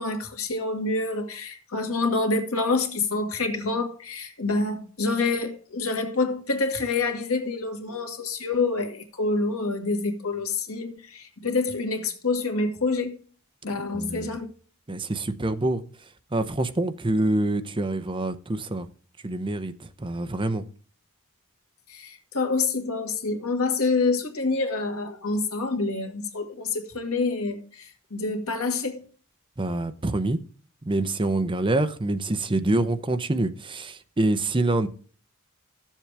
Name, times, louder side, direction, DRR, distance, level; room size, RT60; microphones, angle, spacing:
voice 1, 0.0-13.2 13.6-14.5 21.9-29.1, left 3 dB, 80° left, 1.7 m, -27 dB
voice 2, 13.9-14.4 14.9-15.8 16.3-18.9 19.2-20.6 29.6-30.4 30.9-34.9, right 2 dB, 25° right, 0.6 m, -26 dB
13.5 x 7.3 x 3.4 m
head